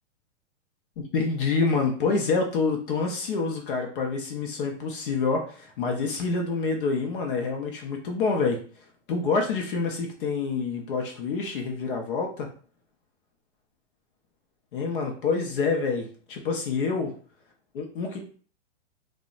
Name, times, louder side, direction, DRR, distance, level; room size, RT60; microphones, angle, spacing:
voice 1, 1.0-8.6 9.1-12.5 14.7-17.1 17.7-18.2, left 4 dB, 45° left, 2 dB, 0.5 m, -27 dB
2.6 x 2.1 x 2.4 m, 0.42 s
hypercardioid pair, 145°, 36 cm